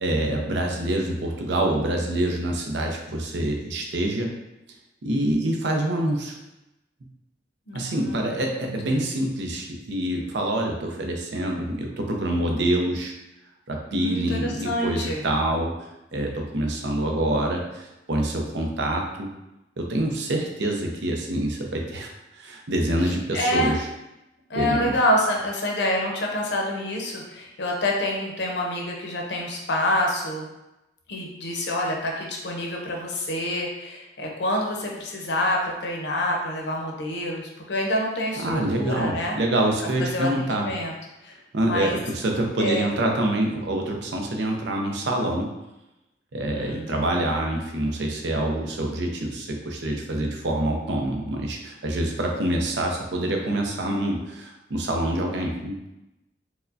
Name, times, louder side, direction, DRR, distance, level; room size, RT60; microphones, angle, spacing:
voice 1, 0.0-4.3 5.0-6.4 7.7-13.1 13.7-15.7 16.1-19.3 19.8-23.9 24.6-24.9 38.4-40.7 41.5-45.5 46.3-55.9, right 1 dB, 70° right, 1 dB, 0.6 m, -26 dB
voice 2, 0.5-1.2 7.7-9.1 13.9-15.2 23.3-23.8 24.5-30.5 31.1-39.4 40.0-40.9 41.2-42.0 42.6-42.9 46.5-47.3, left 1 dB, 70° left, 0 dB, 0.7 m, -27 dB
4.6 x 2.1 x 2.6 m, 0.93 s
head